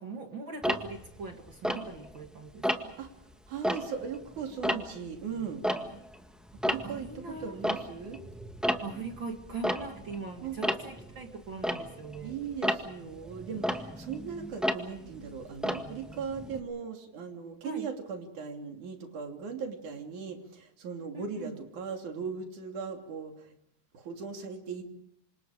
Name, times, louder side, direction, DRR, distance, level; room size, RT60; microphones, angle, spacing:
voice 1, 0.0-2.9 6.7-7.6 8.8-12.4 17.6-17.9 21.1-21.5, right 4 dB, 40° right, 3 dB, 2.4 m, -41 dB
Tick-tock, 0.6-2.3 2.6-3.1 3.5-6.2 6.5-16.6, equal, ahead, 0.7 m, -34 dB
voice 2, 3.0-5.6 6.7-8.2 10.4-10.6 12.2-23.6 23.9-24.8, right 6 dB, 75° right, 3 dB, 4.4 m, -38 dB
28.0 x 26.5 x 5.0 m, 0.74 s
omnidirectional pair, 3.5 m